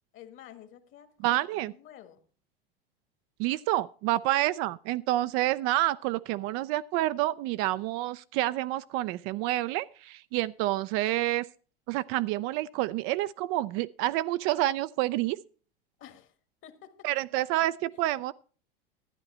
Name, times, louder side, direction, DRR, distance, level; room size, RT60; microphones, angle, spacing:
voice 1, 0.1-2.2 16.0-16.3 16.6-17.1 17.4-17.5, left 10 dB, 40° left, 1.4 m, -50 dB
voice 2, 1.2-1.7 3.4-11.5 11.9-15.4 17.0-18.3, right 16 dB, 45° right, 0.4 m, -28 dB
12.0 x 9.5 x 4.2 m
hypercardioid pair, 100°, 30 cm